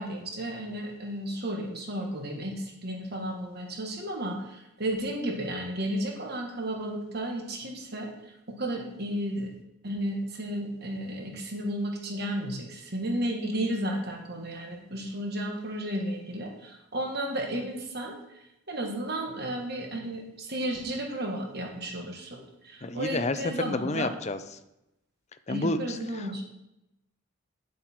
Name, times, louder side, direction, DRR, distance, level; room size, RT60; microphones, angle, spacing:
voice 1, 0.0-9.5 9.8-18.4 18.7-24.1 25.5-26.4, right 1 dB, 50° right, 1 dB, 1.6 m, -33 dB
voice 2, 22.8-23.4 23.6-24.4 25.5-26.0, left 2 dB, 35° left, 10 dB, 0.6 m, -29 dB
9.4 x 7.8 x 4.5 m, 0.89 s
head